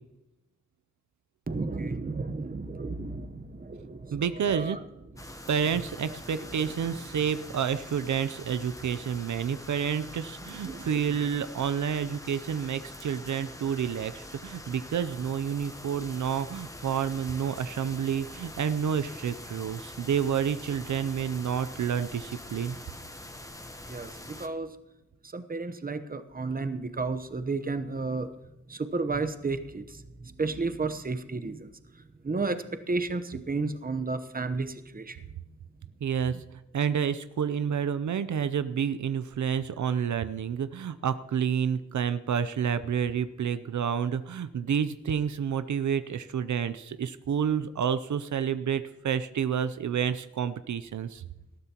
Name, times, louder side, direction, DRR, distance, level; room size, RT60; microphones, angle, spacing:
voice 1, 1.5-4.8 5.3-5.4 6.3-6.8 10.6-11.1 23.9-24.7 25.2-28.3 28.7-31.7 32.2-35.2, right 3 dB, 30° right, 10 dB, 0.9 m, -33 dB
voice 2, 4.1-4.8 5.5-22.8 36.0-36.4 36.7-51.2, right 7 dB, 80° right, 13 dB, 0.5 m, -29 dB
sound 1, 5.2-24.5, left 1 dB, 10° left, 0.9 m, -44 dB
19.5 x 13.5 x 2.9 m, 1.0 s
wide cardioid pair, 120°, 29 cm